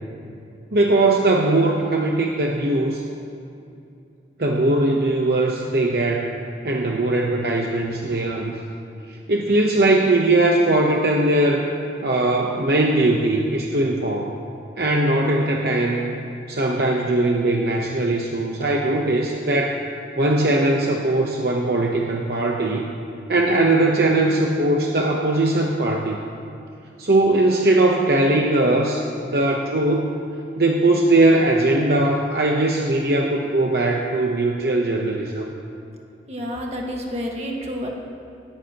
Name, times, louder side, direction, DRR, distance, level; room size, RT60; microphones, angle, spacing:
voice 1, 0.7-3.0 4.4-6.3 6.6-8.6 9.3-11.6 12.0-14.4 14.8-16.2 16.5-19.8 20.2-22.8 23.3-26.2 27.0-30.1 30.6-35.5, right 2 dB, 60° right, 0 dB, 0.9 m, -20 dB
voice 2, 36.3-37.9, equal, 35° right, 0 dB, 1.7 m, -29 dB
19.0 x 14.5 x 3.0 m, 2.6 s
head